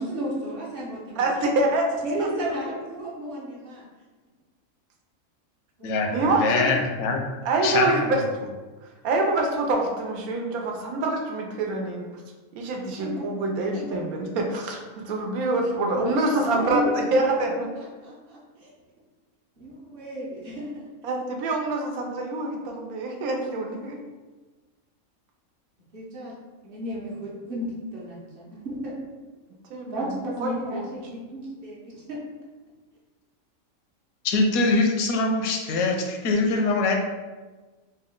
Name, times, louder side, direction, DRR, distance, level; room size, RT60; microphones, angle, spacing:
voice 1, 0.0-1.3 1.5-1.7 2.0-3.8 5.8-6.2 13.0-13.5 15.9-16.1 16.3-18.7 19.6-20.8 25.9-26.4 26.6-29.0 29.9-32.2, equal, 50° right, -5 dB, 0.8 m, -33 dB
voice 2, 1.2-1.9 2.2-2.3 6.1-6.7 7.4-8.2 9.0-12.1 12.5-17.7 21.0-24.0 29.7-30.1 30.4-30.8, right 2 dB, 85° right, 1 dB, 1.1 m, -26 dB
voice 3, 5.8-7.2 7.6-8.1 34.2-37.0, left 3 dB, 80° left, 2 dB, 1.0 m, -23 dB
3.3 x 2.2 x 3.5 m, 1.3 s
omnidirectional pair, 1.5 m